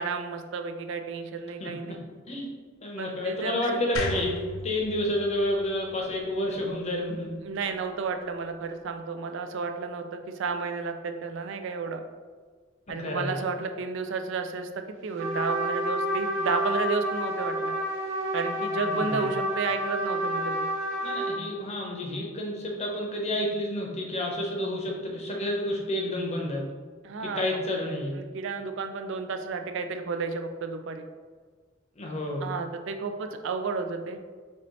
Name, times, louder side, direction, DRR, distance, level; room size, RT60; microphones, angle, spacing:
voice 1, 0.0-2.0 3.0-3.8 7.4-12.0 12.9-14.7 15.0-17.7 18.3-20.7 27.0-27.4 28.2-31.1 32.4-34.2, right 4 dB, 65° right, 6 dB, 0.4 m, -32 dB
voice 2, 1.6-2.0 2.3-2.5 2.8-4.3 4.6-7.3 13.0-13.4 18.8-19.3 21.0-26.6 27.2-28.1 32.0-32.5, left 1 dB, 35° left, 0 dB, 0.7 m, -30 dB
sound 1, 3.9-7.1, left 2 dB, 90° left, 0.5 m, -36 dB
Trumpet, 15.2-21.4, equal, 35° right, 1.0 m, -29 dB
4.4 x 2.9 x 3.0 m, 1.5 s
head